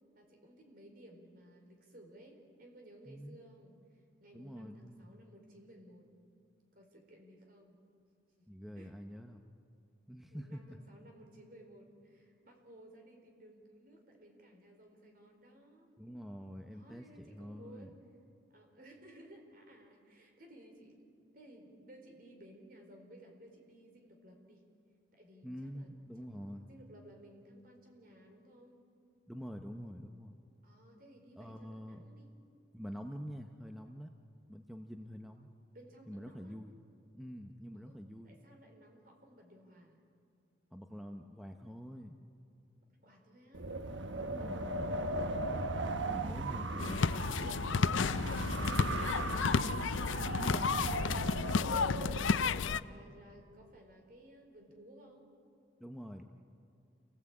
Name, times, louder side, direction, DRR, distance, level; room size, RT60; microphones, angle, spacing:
voice 1, 0.1-6.1 6.7-7.8 8.4-8.5 8.8-8.9 10.3-15.9 16.7-17.9 18.5-24.6 25.1-25.9 26.2-28.8 30.6-32.3 35.7-36.5 37.7-40.1 42.9-44.7 52.1-55.3, right 1 dB, 45° right, 2 dB, 4.1 m, -57 dB
voice 2, 3.0-3.4 4.3-5.2 8.5-9.4 10.1-10.8 16.0-17.9 25.4-26.7 29.3-30.4 31.4-32.0 32.7-34.1 34.5-35.5 36.1-36.8 37.1-38.4 40.7-42.3 44.2-44.8 46.1-47.2 48.6-51.1 55.8-56.2, equal, ahead, 4 dB, 0.8 m, -47 dB
Wind, 43.5-52.2, right 2 dB, 75° right, 1.1 m, -37 dB
sound 1, 46.8-52.8, left 5 dB, 85° left, 0.5 m, -32 dB
28.0 x 18.5 x 8.7 m, 2.5 s
head